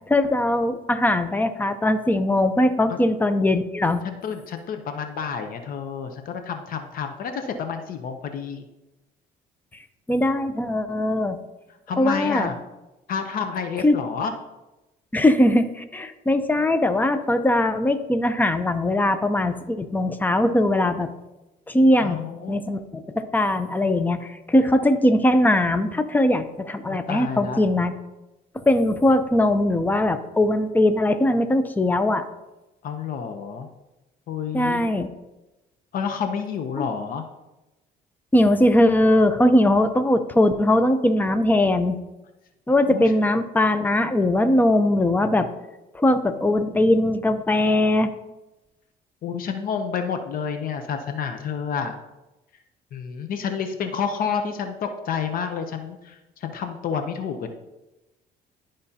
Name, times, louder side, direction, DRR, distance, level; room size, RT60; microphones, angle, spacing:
voice 1, 0.1-4.0 10.1-11.4 12.0-12.5 13.8-13.9 15.1-21.1 21.7-22.2 22.5-27.9 28.7-32.2 34.5-35.1 36.8-36.9 38.3-42.0 42.7-45.5 45.9-48.1, left 1 dB, 10° left, 9 dB, 0.6 m, -20 dB
voice 2, 4.0-8.6 11.9-12.6 13.1-14.3 22.0-22.6 26.9-27.6 32.8-33.7 34.3-34.8 35.9-37.2 42.9-43.1 49.2-52.0 52.9-57.5, left 6 dB, 55° left, 7 dB, 0.7 m, -29 dB
12.0 x 5.0 x 2.8 m, 1.0 s
cardioid pair, 110°, 17 cm